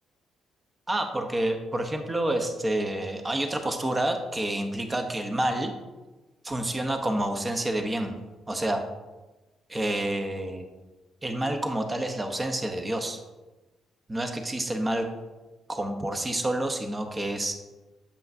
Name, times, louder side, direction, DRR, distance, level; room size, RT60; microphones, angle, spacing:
voice 1, 0.9-5.7 6.4-8.1 8.5-8.8 9.7-10.7 11.2-13.2 14.1-15.1 15.7-17.5, right 1 dB, 20° right, 5 dB, 0.7 m, -28 dB
8.2 x 5.5 x 2.6 m, 1.1 s
cardioid pair, 90°, 0 cm